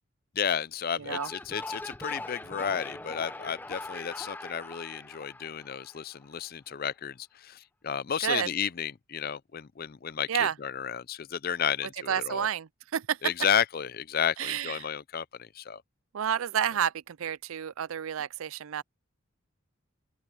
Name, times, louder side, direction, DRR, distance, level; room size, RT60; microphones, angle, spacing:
voice 1, 0.4-12.5 13.2-15.8, left 8 dB, 45° left, 0.5 m, -32 dB
sound 1, 1.0-6.3, left 2 dB, 10° left, 0.8 m, -41 dB
voice 2, 1.0-1.3 8.2-8.5 10.3-10.5 12.1-13.2 14.4-14.9 16.1-18.8, right 9 dB, 75° right, 0.4 m, -30 dB
open air
head